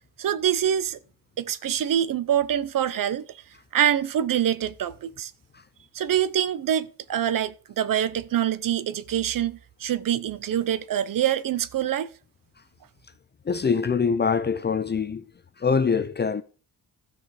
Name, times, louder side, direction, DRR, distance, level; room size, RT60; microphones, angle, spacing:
voice 1, 0.2-1.0 1.4-3.2 3.7-5.3 5.9-12.1, right 10 dB, 65° right, 0.8 m, -25 dB
voice 2, 13.4-15.2 15.6-16.4, left 5 dB, 30° left, 0.6 m, -24 dB
13.0 x 6.3 x 4.9 m
cardioid pair, 95°, 36 cm